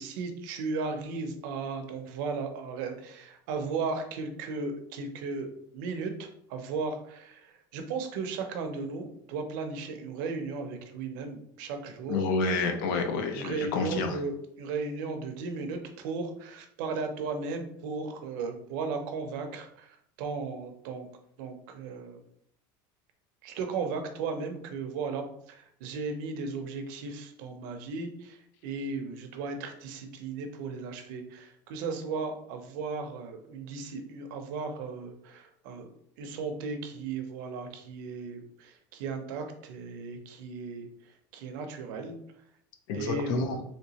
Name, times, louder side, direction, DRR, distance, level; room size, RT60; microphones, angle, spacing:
voice 1, 0.0-5.5 5.7-12.2 13.3-21.1 21.4-22.2 23.4-35.9 36.2-40.9 41.3-42.2 42.9-43.6, right 4 dB, 70° right, 6 dB, 0.6 m, -36 dB
voice 2, 12.1-14.2 42.9-43.6, left 3 dB, 75° left, 5 dB, 0.6 m, -29 dB
3.2 x 2.9 x 2.8 m, 0.71 s
cardioid pair, 165°, 11 cm